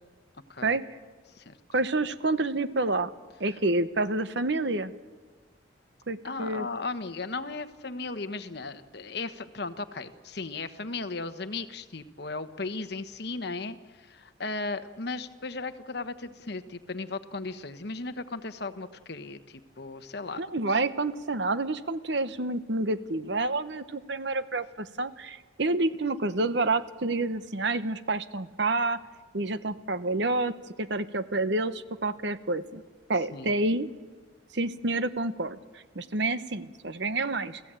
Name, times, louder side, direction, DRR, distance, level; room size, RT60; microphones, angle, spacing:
voice 1, 1.7-3.1 3.4-4.9 6.1-6.7 20.4-29.0 29.3-32.8 33.1-33.9 34.5-35.6 35.9-37.6, right 2 dB, 60° right, 13 dB, 1.0 m, -28 dB
voice 2, 6.2-20.4 20.7-20.8 33.3-33.6, left 3 dB, 55° left, 10 dB, 1.1 m, -36 dB
29.5 x 16.0 x 8.9 m, 1.4 s
head